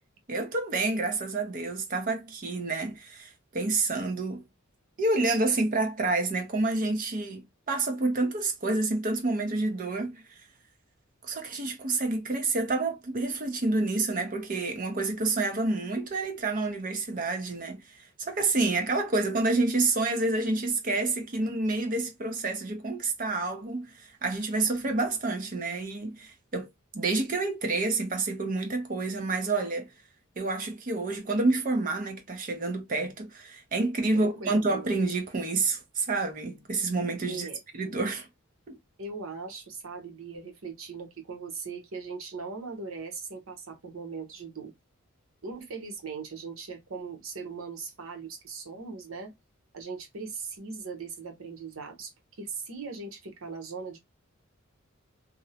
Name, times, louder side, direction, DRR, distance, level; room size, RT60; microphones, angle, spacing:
voice 1, 0.3-4.4 5.0-10.2 11.2-26.7 26.9-29.9 30.4-37.5 37.7-38.3 38.7-38.8, right 3 dB, 40° right, 0.6 m, -28 dB
voice 2, 34.1-34.9 37.3-37.6 39.0-44.7 45.4-49.3 49.7-52.1 52.4-54.0, right 4 dB, 80° right, 0.8 m, -39 dB
2.6 x 2.0 x 2.7 m
head